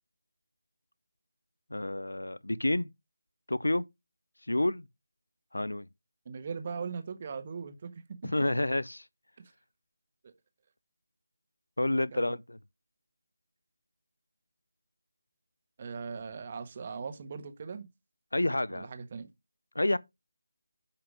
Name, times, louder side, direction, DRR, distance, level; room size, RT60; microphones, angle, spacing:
voice 1, 1.7-2.9 3.5-3.8 4.5-4.8 5.5-5.9 8.2-9.0 11.8-12.6 18.3-18.9 19.7-20.0, left 1 dB, 80° left, 0.6 m, -29 dB
voice 2, 6.2-8.3 10.2-10.3 12.1-12.4 15.8-17.9 18.7-19.3, right 5 dB, 35° right, 1.4 m, -39 dB
9.8 x 5.8 x 3.4 m
figure-of-eight pair, 160°, 0 cm